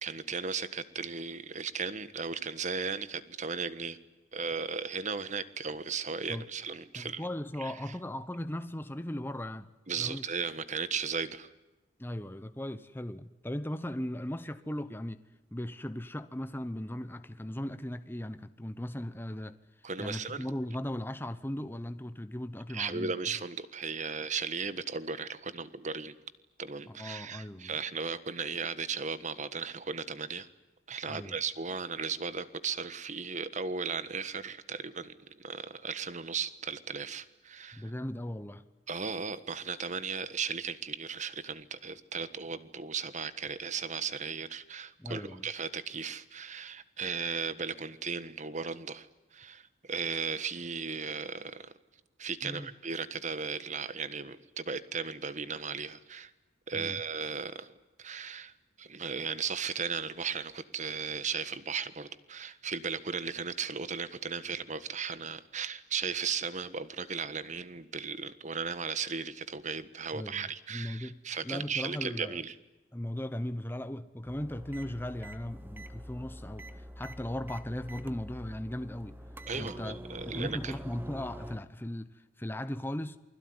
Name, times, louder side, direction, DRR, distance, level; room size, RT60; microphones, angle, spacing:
voice 1, 0.0-4.0 4.3-7.2 7.6-7.7 9.9-11.5 19.8-20.5 22.7-26.1 26.6-30.5 30.9-37.9 38.9-49.1 49.3-51.7 52.2-56.3 56.7-57.7 58.0-58.5 58.8-72.5 79.5-80.7, right 5 dB, 40° right, 1.5 m, -36 dB
voice 2, 6.9-10.2 12.0-15.2 15.5-19.6 20.0-23.1 26.9-27.8 31.1-31.4 37.7-38.6 45.0-45.5 52.4-52.7 56.7-57.0 70.1-72.4 72.9-79.2 79.6-80.0 80.3-83.2, left 1 dB, 10° left, 0.9 m, -38 dB
sound 1, 74.2-81.6, equal, 10° right, 1.0 m, -45 dB
28.5 x 21.0 x 9.7 m
head